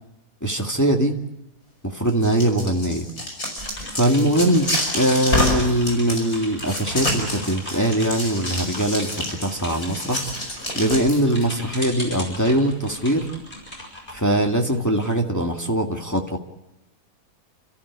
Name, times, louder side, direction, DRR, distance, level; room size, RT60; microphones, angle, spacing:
voice 1, 0.4-1.2 1.8-3.1 3.9-4.7 4.9-10.2 10.7-13.3 14.1-16.4, right 1 dB, 10° left, 1 dB, 2.0 m, -21 dB
sound 1, 2.1-11.4, left 1 dB, 60° left, 6.0 m, -27 dB
sound 2, 3.6-15.1, equal, 30° left, 7.3 m, -38 dB
30.0 x 14.5 x 8.3 m, 0.95 s
omnidirectional pair, 1.7 m